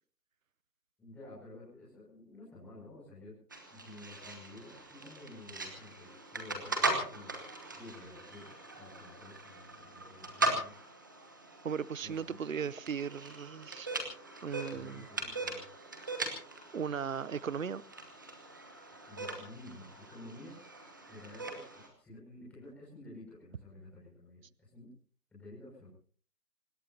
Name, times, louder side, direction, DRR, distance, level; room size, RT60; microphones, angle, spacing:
voice 1, 1.0-3.3 3.7-7.4 7.8-10.7 12.0-12.4 14.7-15.7 19.1-20.6 21.1-24.9 25.3-25.9, left 2 dB, 5° left, 6.2 m, -51 dB
sound 1, 3.5-21.9, right 2 dB, 10° right, 1.1 m, -40 dB
voice 2, 11.6-13.9 14.4-15.1 16.3-16.4 16.7-17.8, right 7 dB, 55° right, 0.8 m, -37 dB
25.5 x 20.5 x 2.8 m
figure-of-eight pair, 165°, 48 cm